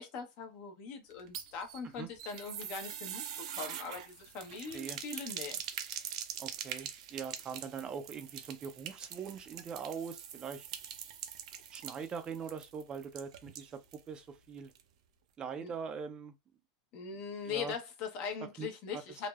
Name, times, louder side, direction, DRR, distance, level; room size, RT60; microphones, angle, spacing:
voice 1, 0.0-5.6 15.6-15.7 16.9-19.3, left 6 dB, 50° left, 0.8 m, -41 dB
sound 1, 1.1-14.1 14.4-14.5 14.7-14.8, right 9 dB, 80° right, 0.5 m, -44 dB
voice 2, 4.6-5.0 6.4-10.7 11.7-13.7 14.1-14.7 15.4-16.3 17.5-17.7 18.6-18.7 18.9-19.0, right 6 dB, 25° right, 0.4 m, -42 dB
3.2 x 2.0 x 2.3 m
supercardioid pair, 140°, 3 cm